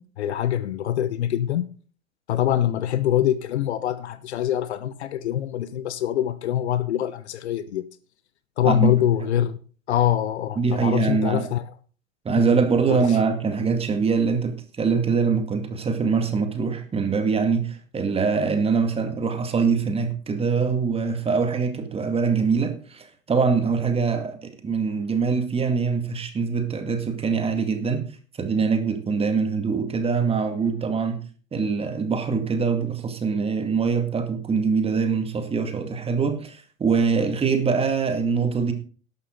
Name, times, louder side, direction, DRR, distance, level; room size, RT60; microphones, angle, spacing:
voice 1, 0.0-1.7 2.3-7.8 8.6-9.6 9.9-11.6 12.3-12.5 12.9-13.1, left 11 dB, 55° left, 1.0 m, -24 dB
voice 2, 8.6-9.0 10.6-11.5 12.2-28.0 28.4-31.2 31.5-38.7, right 5 dB, 15° right, 2.1 m, -23 dB
12.5 x 11.5 x 3.9 m
figure-of-eight pair, 100°, 40 cm